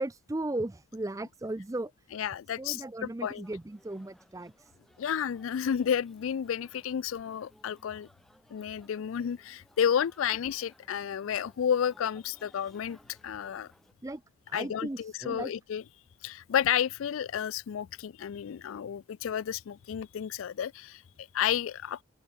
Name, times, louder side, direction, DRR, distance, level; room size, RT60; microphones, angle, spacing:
voice 1, 0.0-1.9 2.6-4.7 14.0-14.2 14.5-15.5, right 2 dB, 15° right, 0.4 m, -36 dB
voice 2, 2.1-3.4 5.0-8.1 8.5-13.0 13.2-13.7 14.5-15.8 16.2-22.0, left 8 dB, 80° left, 0.4 m, -31 dB
sound 1, 3.4-13.9, equal, ahead, 4.3 m, -62 dB
open air
head